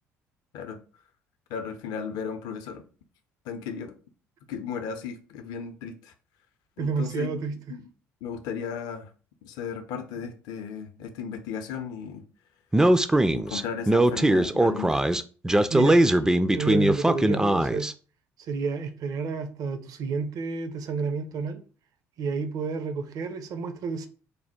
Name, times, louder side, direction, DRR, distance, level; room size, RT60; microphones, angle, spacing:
voice 1, 1.5-2.9 3.4-4.0 4.5-6.1 6.8-7.3 7.7-7.9 8.2-9.1 9.4-12.3 13.3-15.1, left 6 dB, 65° left, 0.5 m, -35 dB
voice 2, 6.8-7.6 15.7-16.0 16.5-17.9 18.5-21.6 22.2-24.1, right 5 dB, 55° right, 0.6 m, -30 dB
Speech, 12.7-17.9, right 1 dB, 10° right, 0.3 m, -21 dB
3.3 x 2.1 x 4.2 m
hypercardioid pair, 55°, 7 cm